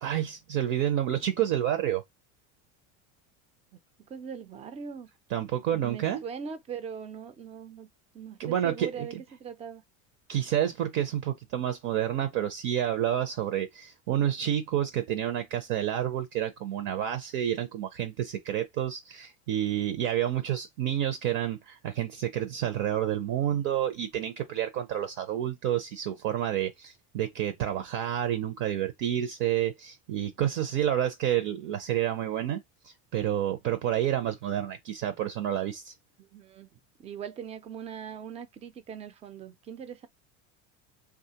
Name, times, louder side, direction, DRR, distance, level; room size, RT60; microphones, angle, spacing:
voice 1, 0.0-2.0 5.3-6.2 8.4-9.1 10.3-35.9, right 11 dB, 60° right, 0.7 m, -29 dB
voice 2, 4.1-5.1 5.7-7.9 8.1-9.8 36.2-40.1, right 7 dB, 20° right, 0.3 m, -41 dB
3.1 x 2.4 x 2.8 m
supercardioid pair, 125°, 36 cm